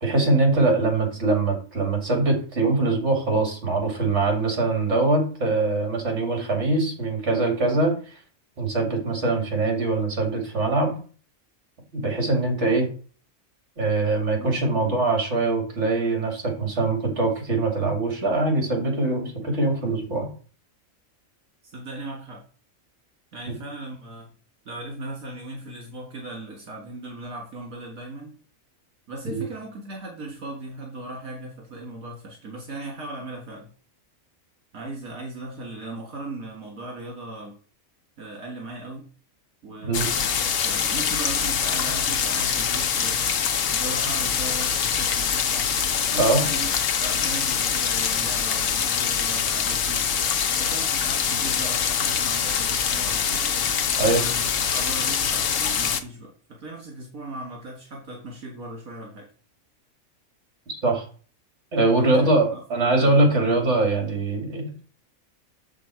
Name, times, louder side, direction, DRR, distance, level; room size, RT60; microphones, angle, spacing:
voice 1, 0.0-8.2 8.6-10.9 11.9-12.9 13.8-20.3 29.3-29.4 39.8-40.1 46.2-46.5 54.0-54.2 60.8-61.0 61.7-64.8, right 2 dB, 55° right, 2 dB, 2.7 m, -23 dB
voice 2, 14.4-15.0 21.7-22.4 23.3-24.3 24.7-28.3 29.1-33.7 34.7-37.5 38.2-39.1 39.6-43.3 43.7-45.7 46.1-46.7 47.0-50.1 50.6-53.6 54.1-54.5 54.7-59.3 62.0-63.2, right 2 dB, 75° right, -2 dB, 2.2 m, -38 dB
sound 1, 39.9-56.0, left 7 dB, 70° left, 1.2 m, -24 dB
7.2 x 6.0 x 4.7 m, 0.40 s
omnidirectional pair, 1.4 m